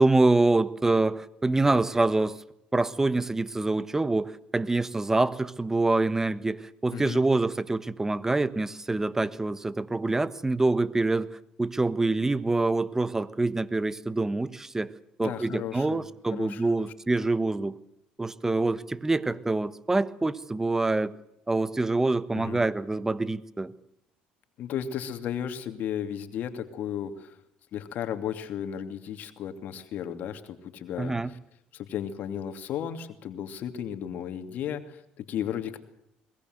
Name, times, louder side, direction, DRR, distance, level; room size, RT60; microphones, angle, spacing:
voice 1, 0.0-2.4 2.7-14.9 15.2-17.8 18.2-21.1 21.5-23.7 31.0-31.3, right 2 dB, 15° right, 16 dB, 1.3 m, -26 dB
voice 2, 6.9-7.2 15.2-16.9 22.3-22.6 24.6-27.4 27.7-31.4 31.7-35.8, left 9 dB, 60° left, 8 dB, 2.7 m, -34 dB
22.0 x 20.0 x 7.9 m, 0.77 s
supercardioid pair, 85°, 3 cm